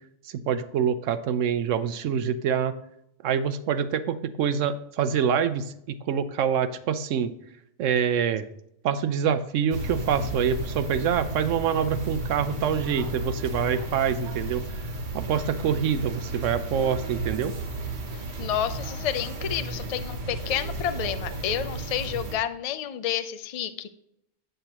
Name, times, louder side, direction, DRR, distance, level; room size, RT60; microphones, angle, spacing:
voice 1, 0.2-2.7 3.2-7.3 7.8-8.5 8.8-14.6 15.1-17.5, right 8 dB, 80° right, 12 dB, 0.9 m, -26 dB
sound 1, 9.7-22.4, right 2 dB, 60° right, 1.4 m, -33 dB
voice 2, 18.1-23.9, left 10 dB, 65° left, 11 dB, 0.3 m, -30 dB
7.9 x 7.8 x 2.9 m, 0.77 s
omnidirectional pair, 1.3 m